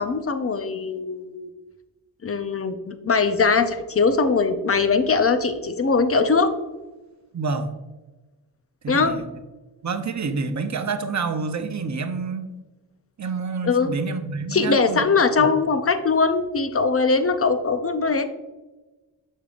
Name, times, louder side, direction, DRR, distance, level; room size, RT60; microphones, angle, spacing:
voice 1, 0.0-1.5 2.2-6.5 8.9-9.1 13.6-13.9 14.5-18.3, left 4 dB, 35° left, 9 dB, 0.5 m, -21 dB
voice 2, 7.3-7.7 8.8-9.3 9.8-12.5 13.2-15.1 15.4-15.5, right 4 dB, 40° right, 8 dB, 0.6 m, -28 dB
6.7 x 6.3 x 2.5 m, 1.2 s
wide cardioid pair, 90°, 43 cm